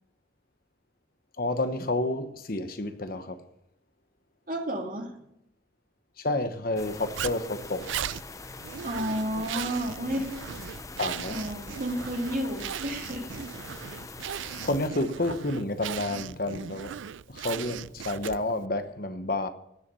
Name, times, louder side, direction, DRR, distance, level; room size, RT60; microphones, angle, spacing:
voice 1, 1.4-3.4 6.2-7.9 11.0-11.4 14.6-16.9 17.3-19.5, left 2 dB, 50° left, 1.0 m, -30 dB
voice 2, 4.5-5.1 8.8-10.3 11.3-13.3, equal, 45° right, 2.4 m, -31 dB
sound 1, 6.8-14.9, left 3 dB, 15° left, 0.5 m, -43 dB
Zipper (clothing), 7.2-18.6, right 9 dB, 80° right, 0.4 m, -38 dB
17.5 x 7.1 x 6.9 m
head